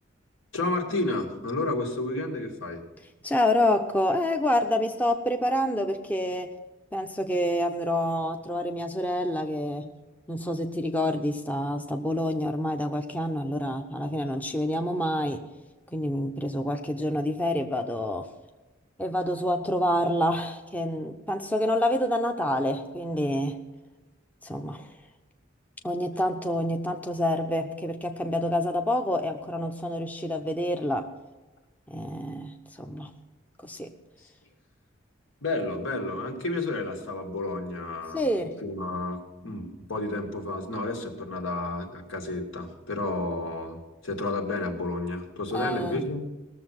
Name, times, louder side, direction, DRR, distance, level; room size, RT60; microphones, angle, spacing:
voice 1, 0.5-2.8 35.4-38.2 38.6-46.3, left 2 dB, 75° left, 2 dB, 2.1 m, -31 dB
voice 2, 3.2-6.5 6.9-9.9 10.3-15.4 15.9-18.3 19.0-23.6 24.4-25.0 25.8-31.1 31.9-33.1 33.6-33.9 38.1-38.6 45.5-46.1, left 1 dB, 10° left, 4 dB, 0.7 m, -27 dB
19.0 x 7.0 x 5.8 m, 1.1 s
head